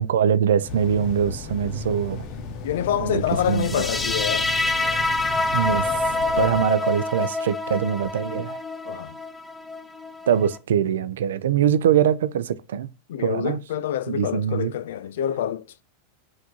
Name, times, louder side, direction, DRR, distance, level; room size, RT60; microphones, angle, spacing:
voice 1, 0.0-2.2 3.0-3.7 5.5-8.6 10.3-12.9 13.2-13.6 14.1-14.7, right 8 dB, 85° right, 0.3 m, -23 dB
sound 1, 0.6-6.6, left 4 dB, 45° left, 0.7 m, -35 dB
voice 2, 2.6-4.5 8.8-9.2 13.1-15.8, left 10 dB, 80° left, 0.3 m, -27 dB
sound 2, 3.5-10.6, left 2 dB, 10° left, 0.4 m, -26 dB
5.9 x 2.5 x 2.8 m
supercardioid pair, 130°, 0 cm